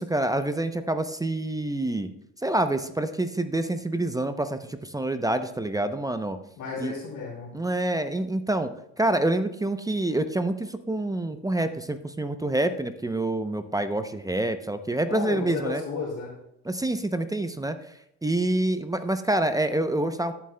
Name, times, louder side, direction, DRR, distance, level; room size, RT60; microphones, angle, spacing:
voice 1, 0.0-2.1 2.4-6.4 6.8-6.9 7.5-8.7 9.0-15.8 16.6-17.8 18.2-20.3, right 1 dB, 10° right, 9 dB, 0.6 m, -27 dB
voice 2, 6.6-7.5 15.1-16.4, left 5 dB, 55° left, -6 dB, 2.9 m, -33 dB
14.0 x 7.4 x 2.2 m, 0.79 s
supercardioid pair, 85°, 37 cm